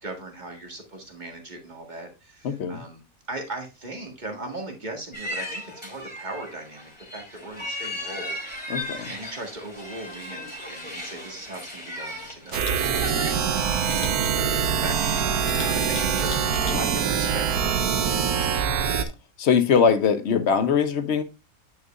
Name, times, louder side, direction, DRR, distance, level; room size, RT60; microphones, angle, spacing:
voice 1, 0.0-3.0 3.3-18.5, right 2 dB, 30° right, 1.8 m, -39 dB
voice 2, 2.4-2.8 8.7-9.1 16.7-16.8 19.4-21.2, left 6 dB, 55° left, 0.9 m, -22 dB
sound 1, 5.1-17.4, left 1 dB, 5° left, 2.8 m, -38 dB
Camera, 12.5-12.8 13.9-14.1 15.4-16.8 17.3-17.5, left 7 dB, 90° left, 1.4 m, -38 dB
sound 2, 12.5-19.0, right 7 dB, 90° right, 1.3 m, -24 dB
9.2 x 5.5 x 2.4 m
omnidirectional pair, 1.6 m